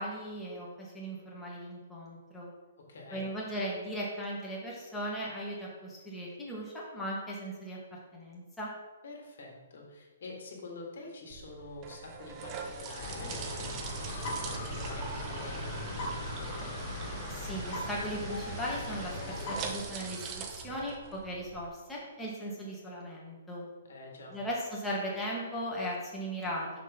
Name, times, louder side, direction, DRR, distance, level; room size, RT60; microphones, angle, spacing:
voice 1, 0.0-2.5 3.1-8.7 17.3-23.7 24.3-26.8, equal, 5° left, -5 dB, 1.7 m, -38 dB
voice 2, 2.8-3.3 9.0-16.7 23.8-24.4, left 3 dB, 70° left, 0 dB, 1.9 m, -47 dB
sound 1, 11.3-21.7, right 5 dB, 25° right, 0.7 m, -43 dB
sound 2, 13.0-19.7, left 1 dB, 50° left, 2.0 m, -38 dB
6.3 x 3.6 x 5.6 m, 1.3 s
hypercardioid pair, 150°, 0 cm